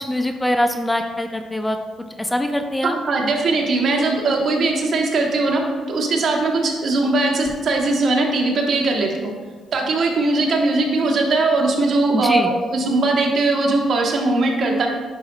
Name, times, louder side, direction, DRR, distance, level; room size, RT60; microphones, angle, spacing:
voice 1, 0.0-1.8 2.2-3.0 12.1-12.5, left 1 dB, 10° left, 6 dB, 0.5 m, -22 dB
voice 2, 2.8-5.6 5.9-9.3 9.7-14.9, right 3 dB, 60° right, 1 dB, 1.3 m, -20 dB
10.0 x 6.1 x 2.4 m, 1.5 s
cardioid pair, 90°, 0 cm